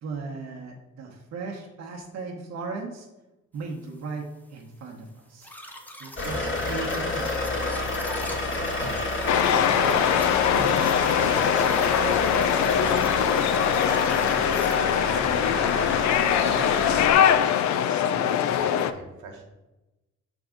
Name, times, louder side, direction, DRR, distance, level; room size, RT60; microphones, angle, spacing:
voice 1, 0.0-3.1 3.5-5.5 6.0-8.0, right 4 dB, 60° right, 0 dB, 1.0 m, -37 dB
sound 1, 5.4-14.8, equal, 5° left, 0.8 m, -42 dB
sound 2, 6.2-17.1, left 2 dB, 40° left, 1.9 m, -29 dB
voice 2, 9.2-10.4 11.1-13.6 14.1-16.1 17.2-19.4, right 4 dB, 80° right, 1 dB, 1.3 m, -42 dB
sound 3, 9.3-18.9, left 9 dB, 65° left, 0.5 m, -22 dB
5.9 x 3.6 x 5.0 m, 1.0 s
cardioid pair, 90°, 30 cm